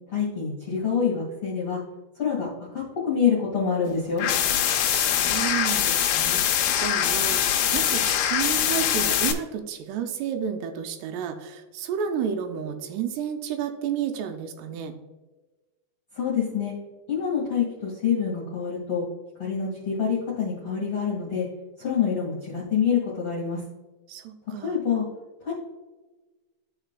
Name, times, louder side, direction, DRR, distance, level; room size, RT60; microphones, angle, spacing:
voice 1, 0.1-1.8 2.2-2.5 2.7-4.3 16.2-16.7 17.1-19.1 19.4-21.5 21.8-23.6 24.6-25.1 25.4-25.5, left 7 dB, 50° left, -6 dB, 1.7 m, -26 dB
sound 1, 4.2-9.3, left 10 dB, 85° left, 2.2 m, -23 dB
voice 2, 4.9-6.5 6.8-14.9 24.1-24.8, right 8 dB, 80° right, 6 dB, 2.6 m, -31 dB
13.5 x 4.8 x 2.2 m, 1.2 s
omnidirectional pair, 5.2 m